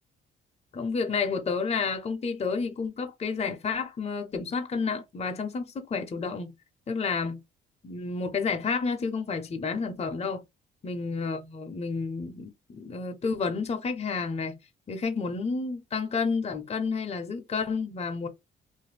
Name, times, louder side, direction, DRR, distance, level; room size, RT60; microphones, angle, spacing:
voice 1, 0.7-6.5 6.9-7.4 7.8-10.4 10.8-14.6 14.9-18.3, left 4 dB, 30° left, 0.7 m, -30 dB
2.6 x 2.5 x 3.2 m
cardioid pair, 90°, 20 cm